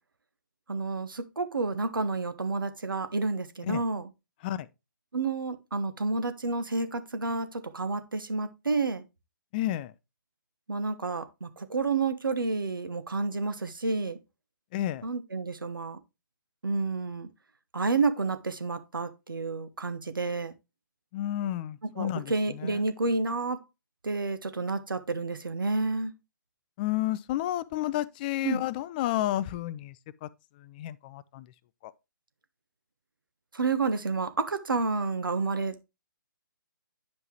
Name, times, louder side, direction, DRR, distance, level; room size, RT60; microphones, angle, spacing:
voice 1, 0.7-4.0 5.1-9.0 10.7-14.2 15.0-16.0 16.6-17.3 17.7-20.5 22.0-23.6 24.0-26.1 28.4-28.6 33.5-35.8, right 3 dB, 80° right, 1.0 m, -30 dB
voice 2, 9.5-9.9 14.7-15.1 21.1-22.8 26.8-31.5 31.8-31.9, left 13 dB, 25° left, 0.4 m, -31 dB
9.7 x 5.5 x 3.0 m
figure-of-eight pair, 135°, 11 cm